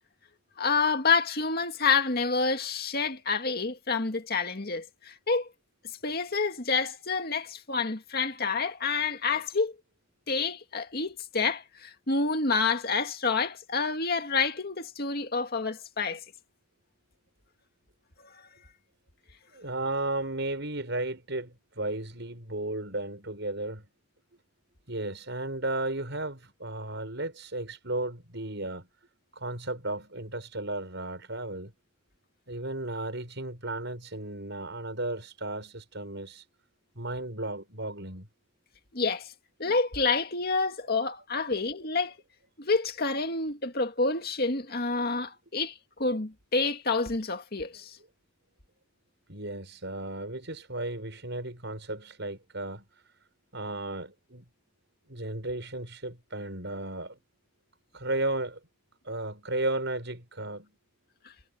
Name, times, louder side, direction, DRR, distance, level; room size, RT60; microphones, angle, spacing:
voice 1, 0.6-5.5 6.0-9.8 10.3-16.2 18.2-18.3 38.9-39.3 39.6-42.1 42.6-45.7 46.0-48.0, left 4 dB, 50° left, 2.2 m, -28 dB
voice 2, 19.5-23.9 24.9-28.9 29.3-31.7 32.5-36.5 37.0-38.3 49.3-52.8 53.5-54.4 55.1-57.2 57.9-58.6 59.0-60.7, right 2 dB, 60° right, 7.2 m, -34 dB
head